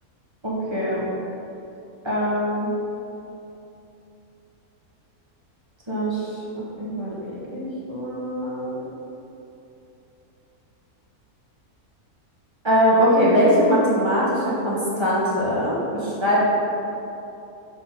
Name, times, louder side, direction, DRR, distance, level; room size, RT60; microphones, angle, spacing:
voice 1, 0.4-1.0 2.0-2.7 5.9-6.4 6.8-7.1 7.5-8.8 12.6-16.5, equal, 20° right, -7 dB, 1.4 m, -21 dB
5.9 x 3.9 x 5.6 m, 2.9 s
omnidirectional pair, 1.6 m